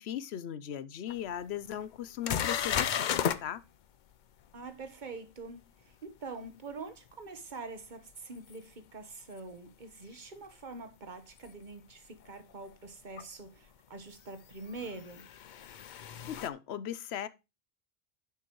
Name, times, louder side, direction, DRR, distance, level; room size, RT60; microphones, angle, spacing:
voice 1, 0.0-3.6 16.3-17.3, left 10 dB, 85° left, 0.9 m, -38 dB
sound 1, 1.1-1.2 1.7-1.8 2.2-3.4 8.5-8.6 11.4-11.5 13.2-13.3 14.6-16.5, left 8 dB, 55° left, 0.6 m, -33 dB
voice 2, 4.5-15.3, right 3 dB, 50° right, 1.3 m, -45 dB
10.5 x 6.9 x 3.1 m
omnidirectional pair, 1.1 m